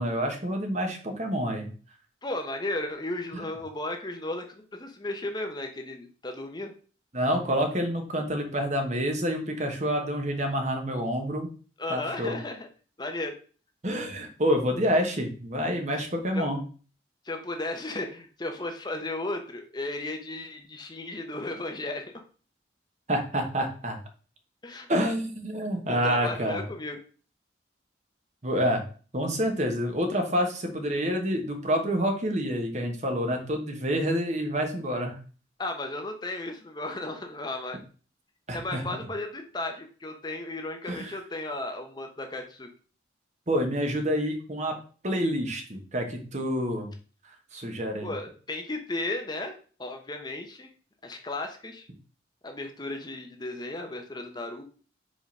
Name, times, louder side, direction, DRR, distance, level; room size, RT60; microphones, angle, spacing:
voice 1, 0.0-1.7 3.3-3.4 7.1-11.5 11.9-12.4 13.8-16.6 23.1-24.0 24.9-26.6 28.4-28.8 29.1-35.2 38.5-38.8 40.8-41.2 43.5-44.8 45.0-46.9 47.5-48.1, equal, 40° right, 4 dB, 1.2 m, -28 dB
voice 2, 2.2-6.7 11.8-12.7 13.0-13.4 16.3-16.5 17.2-22.0 24.6-24.9 25.9-27.0 35.6-37.8 38.5-42.7 48.0-49.5 49.8-50.7 51.0-51.9 52.4-54.6, left 2 dB, 20° left, 4 dB, 0.7 m, -34 dB
5.1 x 3.9 x 5.4 m, 0.40 s
head